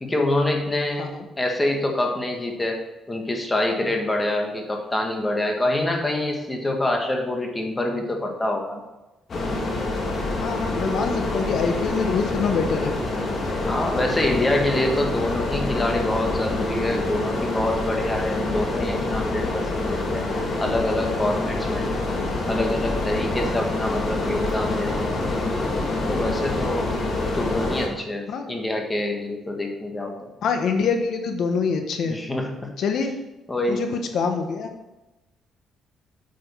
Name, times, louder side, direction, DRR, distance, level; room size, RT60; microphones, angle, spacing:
voice 1, 0.0-1.1 1.4-2.8 3.1-8.8 13.7-20.3 20.6-21.9 22.5-25.2 26.1-26.9 27.3-30.3 32.0-32.7 33.5-33.8, left 1 dB, 20° left, 2 dB, 1.7 m, -26 dB
sound 1, 9.3-27.9, left 2 dB, 50° left, 2.0 m, -26 dB
voice 2, 10.4-12.9 28.3-28.5 30.4-32.2 32.8-33.1 33.7-34.7, left 5 dB, 70° left, 6 dB, 1.2 m, -25 dB
8.5 x 6.2 x 4.7 m, 1.0 s
cardioid pair, 90°, 0 cm